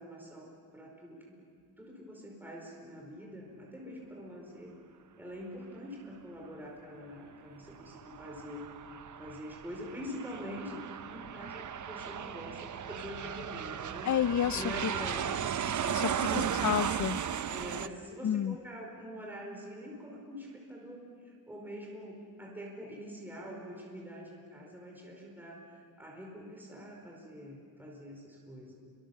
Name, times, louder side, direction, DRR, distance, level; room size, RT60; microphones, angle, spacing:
voice 1, 0.0-1.4 1.8-4.8 5.2-8.7 9.2-10.8 11.1-14.1 14.5-16.5 17.4-28.7, equal, 5° right, -2 dB, 4.4 m, -45 dB
Aircraft, 7.7-17.9, right 8 dB, 55° right, 0.7 m, -36 dB
voice 2, 14.1-14.9 15.9-17.2 18.2-18.6, left 9 dB, 55° left, 17 dB, 0.5 m, -30 dB
28.5 x 24.5 x 7.1 m, 2.3 s
wide cardioid pair, 175°, 36 cm